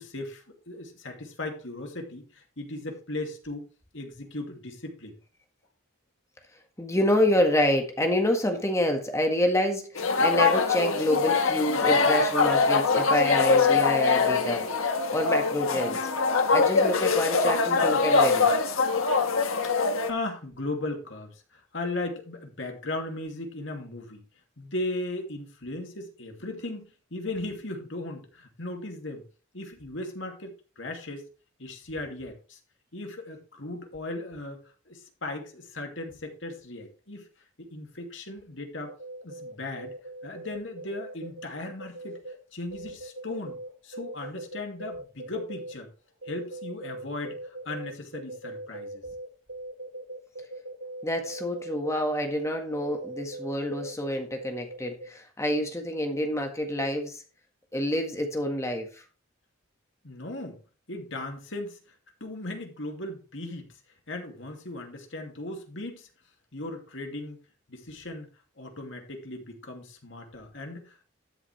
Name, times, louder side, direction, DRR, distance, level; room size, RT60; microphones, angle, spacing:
voice 1, 0.0-3.6 3.9-5.2 19.6-19.7 20.0-24.2 24.6-29.2 29.5-31.2 31.6-32.6 32.9-34.6 34.9-37.3 37.6-38.9 39.2-39.9 40.2-42.2 42.5-43.6 43.8-45.9 46.2-49.0 60.0-60.6 60.9-61.8 62.2-63.7 64.1-66.1 66.5-67.4 67.7-68.3 68.6-71.0, left 2 dB, 60° left, 3 dB, 2.6 m, -37 dB
voice 2, 6.8-14.6 15.1-16.1 16.5-18.5 51.0-57.2 57.7-59.0, left 1 dB, 15° left, 3 dB, 1.7 m, -27 dB
sound 1, 9.9-20.1, left 4 dB, 85° left, 1.4 m, -23 dB
sound 2, 38.9-42.3 42.7-45.7 46.2-51.9 52.7-54.1 54.4-55.1, right 2 dB, 90° right, 6.5 m, -40 dB
13.0 x 7.4 x 3.4 m, 0.35 s
head